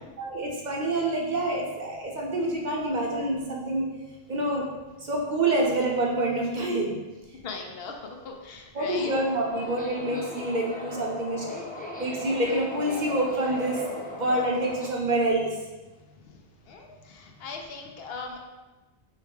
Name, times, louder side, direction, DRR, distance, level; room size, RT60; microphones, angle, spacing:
voice 1, 0.2-3.9 4.3-4.7 5.0-6.9 8.7-11.5 12.0-15.6, right 1 dB, 50° right, -1 dB, 0.7 m, -27 dB
voice 2, 7.3-9.1 16.1-18.4, left 4 dB, 75° left, 2 dB, 0.8 m, -40 dB
Subway metro underground, 8.9-14.9, left 2 dB, 15° left, 0.3 m, -38 dB
4.5 x 2.2 x 4.7 m, 1.2 s
omnidirectional pair, 1.1 m